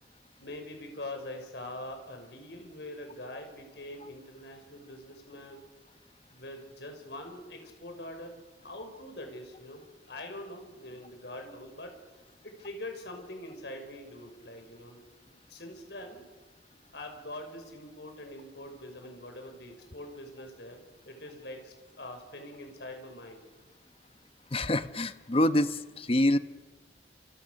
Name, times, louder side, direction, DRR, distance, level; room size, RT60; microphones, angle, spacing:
voice 1, 0.4-5.6 6.3-8.3 8.6-9.8 10.1-11.9 12.4-16.2 16.9-23.4, left 1 dB, 70° left, 4 dB, 5.7 m, -43 dB
voice 2, 24.5-26.4, left 1 dB, 35° left, 12 dB, 1.1 m, -26 dB
29.0 x 29.0 x 6.5 m, 1.2 s
head